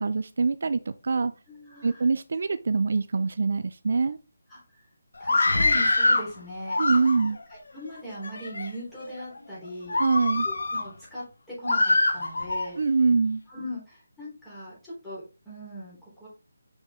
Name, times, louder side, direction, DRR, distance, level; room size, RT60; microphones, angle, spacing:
voice 1, 0.0-1.3 1.8-4.2 6.8-7.4 9.9-10.5 12.8-13.4, right 4 dB, 60° right, 0.4 m, -24 dB
voice 2, 1.5-2.0 4.5-4.8 5.2-6.8 7.5-10.0 10.4-12.8 13.5-16.3, equal, 5° left, 3.5 m, -40 dB
Screaming, 5.2-6.3 6.7-7.4 8.1-8.7 9.2-9.4 9.9-10.9 11.7-12.7, left 2 dB, 75° left, 1.2 m, -24 dB
5.9 x 5.5 x 3.6 m
figure-of-eight pair, 165°, 0 cm